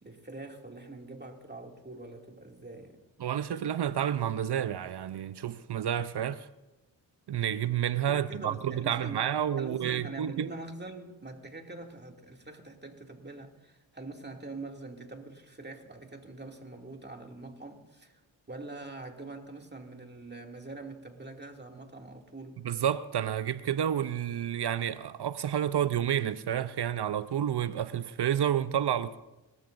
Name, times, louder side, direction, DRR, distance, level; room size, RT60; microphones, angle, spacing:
voice 1, 0.0-3.0 8.1-9.3 9.6-18.2 18.5-22.6, right 2 dB, 20° right, 2.6 m, -44 dB
voice 2, 3.2-6.5 7.3-10.5 22.6-29.2, right 10 dB, 55° right, 0.7 m, -30 dB
25.5 x 13.5 x 2.6 m
supercardioid pair, 45°, 47 cm